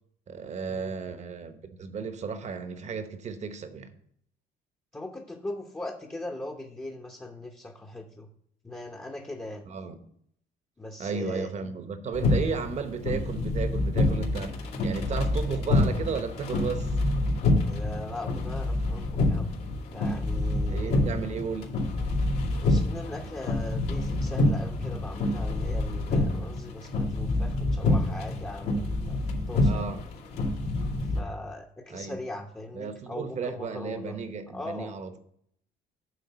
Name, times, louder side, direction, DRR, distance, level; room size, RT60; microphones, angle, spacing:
voice 1, 0.3-3.9 9.7-10.0 11.0-16.9 20.7-21.7 29.6-30.0 31.9-32.2 32.7-35.2, right 5 dB, 40° right, 9 dB, 1.0 m, -34 dB
voice 2, 4.9-8.3 8.6-9.6 10.8-11.8 17.7-19.5 19.9-21.1 22.6-29.2 29.5-29.9 31.0-34.2 34.5-34.9, left 1 dB, 15° left, 0 dB, 0.9 m, -40 dB
sound 1, 12.1-31.2, left 2 dB, 80° left, 2.5 m, -27 dB
9.2 x 3.8 x 6.7 m, 0.68 s
cardioid pair, 110°, 17 cm